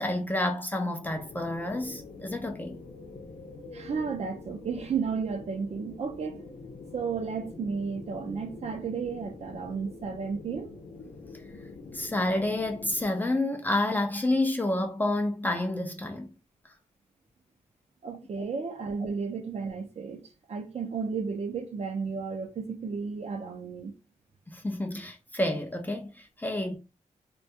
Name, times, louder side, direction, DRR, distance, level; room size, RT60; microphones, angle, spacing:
voice 1, 0.0-2.8 11.9-16.3 24.5-26.8, left 1 dB, 15° left, 0.4 m, -29 dB
sound 1, 1.0-13.1, left 3 dB, 75° left, 0.6 m, -45 dB
voice 2, 3.7-6.5 6.9-10.8 18.0-23.9, right 5 dB, 55° right, 0.5 m, -33 dB
2.2 x 2.2 x 2.6 m
wide cardioid pair, 115°, 13 cm